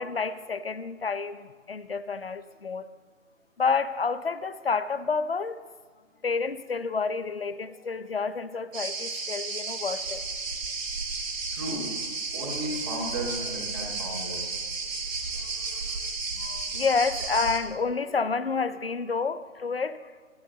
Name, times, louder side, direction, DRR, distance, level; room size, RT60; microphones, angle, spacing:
voice 1, 0.0-2.9 3.6-5.6 6.2-10.2 16.3-20.1, left 5 dB, 45° left, 13 dB, 0.7 m, -29 dB
sound 1, 8.7-17.6, right 4 dB, 75° right, 2.7 m, -33 dB
voice 2, 11.5-11.8 12.3-14.5, right 1 dB, 15° right, -4 dB, 2.3 m, -34 dB
24.0 x 9.4 x 3.8 m, 1.4 s
hypercardioid pair, 175°, 40 cm